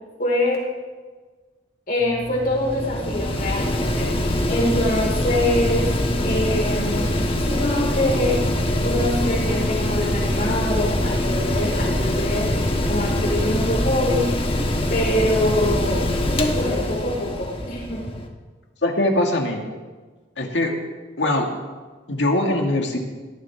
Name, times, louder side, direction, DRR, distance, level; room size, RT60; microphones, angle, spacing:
voice 1, 0.2-0.6 1.9-4.1 4.5-5.9 6.2-7.2 7.5-8.4 8.8-12.5 12.9-14.3 14.9-18.0, left 1 dB, 50° left, -2 dB, 4.7 m, -24 dB
Mechanical fan, 2.0-18.3, left 1 dB, 30° left, 1.3 m, -23 dB
voice 2, 18.8-19.6 20.4-20.7 21.2-21.5 22.1-23.0, left 1 dB, 75° left, 2 dB, 2.1 m, -21 dB
18.0 x 13.5 x 3.6 m, 1.4 s
head